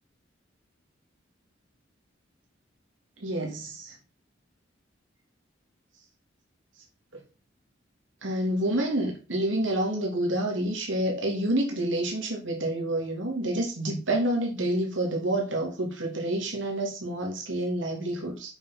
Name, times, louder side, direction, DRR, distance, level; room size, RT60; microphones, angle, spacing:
voice 1, 3.2-3.9 8.2-18.5, right 1 dB, 80° right, 2.8 m, -28 dB
7.9 x 5.9 x 6.0 m
head